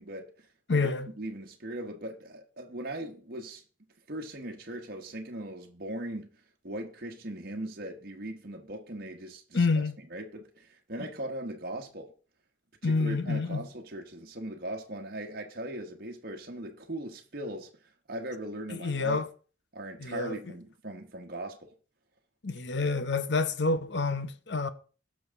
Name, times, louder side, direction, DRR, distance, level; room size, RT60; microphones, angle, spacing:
voice 1, 0.0-3.6 4.1-6.3 6.6-12.1 12.8-17.7 18.1-19.2 19.7-21.7, right 1 dB, 50° right, 1.2 m, -39 dB
voice 2, 0.7-1.1 9.5-10.0 12.8-13.7 18.7-19.3 20.0-20.4 22.4-24.7, left 3 dB, 60° left, 0.8 m, -28 dB
18.5 x 6.3 x 3.6 m
head